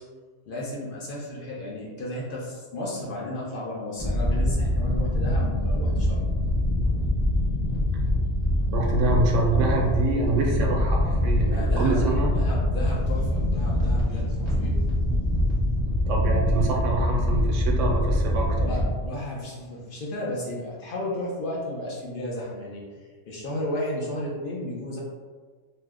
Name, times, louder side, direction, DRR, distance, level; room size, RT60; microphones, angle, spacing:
voice 1, 0.5-6.3 11.4-15.0 18.6-22.8 23.3-25.0, left 1 dB, 55° left, -4 dB, 0.7 m, -33 dB
sound 1, 4.0-19.1, left 1 dB, 25° left, 0.9 m, -24 dB
voice 2, 8.7-12.3 16.1-18.7, right 2 dB, 85° right, -1 dB, 0.9 m, -26 dB
2.7 x 2.0 x 3.4 m, 1.5 s
omnidirectional pair, 1.3 m